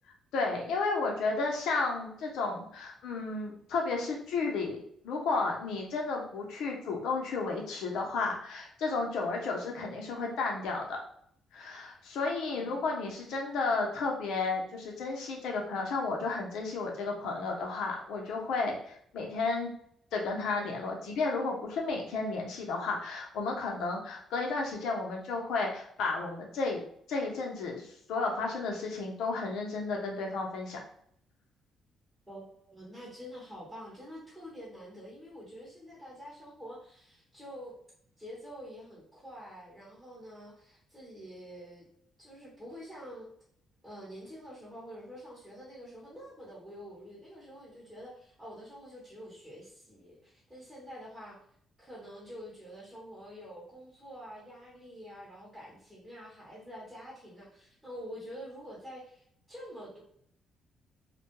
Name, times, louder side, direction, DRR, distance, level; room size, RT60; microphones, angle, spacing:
voice 1, 0.3-4.8 5.0-11.0 11.5-19.7 20.1-26.8 27.1-30.8, left 3 dB, 85° left, 0 dB, 0.6 m, -32 dB
voice 2, 12.5-12.9 32.3-37.7 38.2-41.8 42.2-43.3 43.8-51.4 51.8-60.0, equal, 10° right, -7 dB, 1.0 m, -47 dB
2.2 x 2.1 x 3.0 m, 0.67 s
cardioid pair, 90°, 0 cm